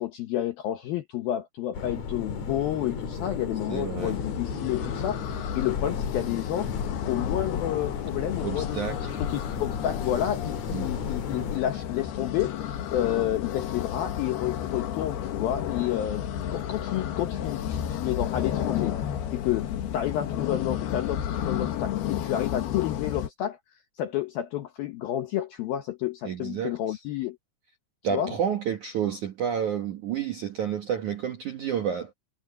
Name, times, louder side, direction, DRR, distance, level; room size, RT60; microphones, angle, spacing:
voice 1, 0.0-6.8 7.0-8.8 9.3-16.2 16.5-19.0 19.3-19.7 19.9-23.6 24.0-27.4 28.1-28.3, left 12 dB, 80° left, 2.1 m, -30 dB
sound 1, 1.7-11.6, left 6 dB, 50° left, 2.5 m, -34 dB
voice 2, 3.7-4.2 8.4-9.2 10.7-10.9 26.2-27.0 28.0-32.1, right 8 dB, 75° right, 1.8 m, -30 dB
sound 2, 4.0-23.3, left 10 dB, 65° left, 3.0 m, -32 dB
omnidirectional pair, 5.7 m